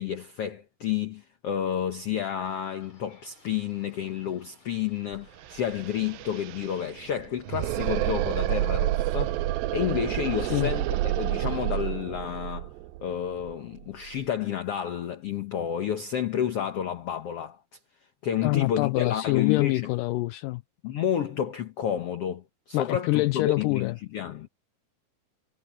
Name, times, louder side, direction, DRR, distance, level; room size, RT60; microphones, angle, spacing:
voice 1, 0.0-9.4 9.7-12.7 13.0-17.6 18.2-19.9 20.8-24.5, left 9 dB, 65° left, 1.5 m, -30 dB
sound 1, 2.4-8.7, left 3 dB, 45° left, 8.1 m, -60 dB
sound 2, 5.1-5.2 5.4-14.2, right 15 dB, 80° right, 2.4 m, -29 dB
voice 2, 10.4-10.7 18.4-20.6 22.7-24.0, left 20 dB, 85° left, 1.9 m, -25 dB
omnidirectional pair, 4.3 m